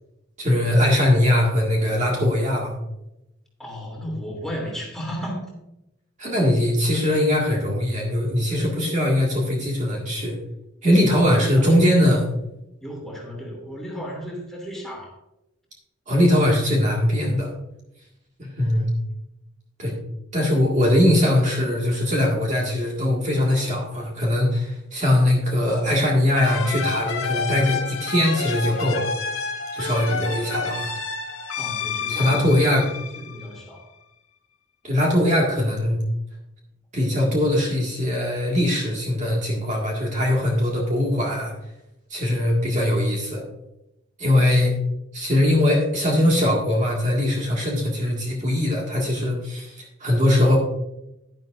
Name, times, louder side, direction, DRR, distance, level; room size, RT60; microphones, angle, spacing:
voice 1, 0.4-2.7 6.2-10.4 10.8-12.2 16.1-17.5 18.4-18.9 19.8-19.9 20.3-29.1 29.7-30.9 32.1-32.9 34.8-36.0 36.9-41.5 42.1-43.4 44.2-44.8 45.1-50.6, left 1 dB, 35° right, -2 dB, 1.9 m, -21 dB
voice 2, 3.6-5.4 11.1-12.1 12.8-15.2 31.6-32.5 32.8-33.9, equal, ahead, -2 dB, 2.8 m, -34 dB
sound 1, 26.4-33.8, left 5 dB, 85° left, 1.5 m, -29 dB
11.0 x 11.0 x 2.5 m, 0.88 s
head